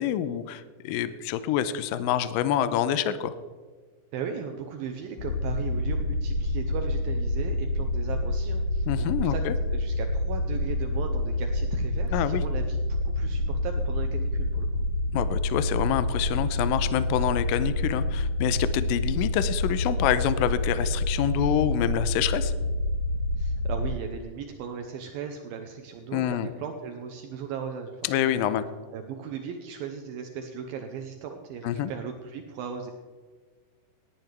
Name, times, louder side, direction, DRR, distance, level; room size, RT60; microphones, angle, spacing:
voice 1, 0.0-3.3 8.9-9.6 12.1-12.4 15.1-22.5 26.1-26.5 28.0-28.7 31.6-31.9, left 11 dB, 85° left, 13 dB, 2.0 m, -27 dB
voice 2, 4.1-9.4 9.7-14.9 23.4-28.3 28.9-32.9, right 7 dB, 75° right, 4 dB, 2.4 m, -37 dB
sound 1, 5.2-23.9, left 1 dB, 65° left, 1.4 m, -27 dB
18.0 x 10.5 x 3.4 m, 1.5 s
omnidirectional pair, 4.7 m